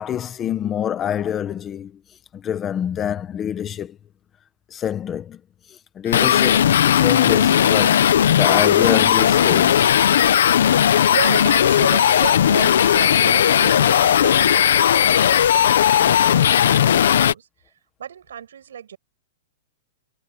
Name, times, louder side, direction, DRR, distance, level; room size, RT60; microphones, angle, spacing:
voice 1, 0.0-2.0 2.3-4.0 4.7-5.4 5.9-9.9, left 9 dB, 15° left, 1.4 m, -26 dB
sound 1, 6.1-17.3, left 9 dB, 65° left, 1.1 m, -16 dB
voice 2, 11.1-17.5 18.0-19.0, right 9 dB, 90° right, 8.0 m, -33 dB
hypercardioid pair, 180°, 0 cm